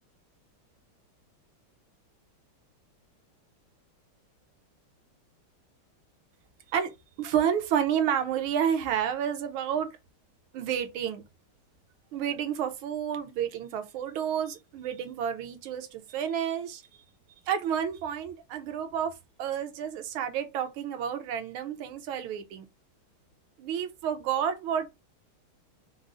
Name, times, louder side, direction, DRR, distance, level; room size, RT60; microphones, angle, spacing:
voice 1, 7.2-9.9 10.5-11.2 12.1-16.8 17.5-22.6 23.6-24.9, right 8 dB, 80° right, 1.6 m, -30 dB
5.1 x 2.0 x 3.7 m
omnidirectional pair, 2.3 m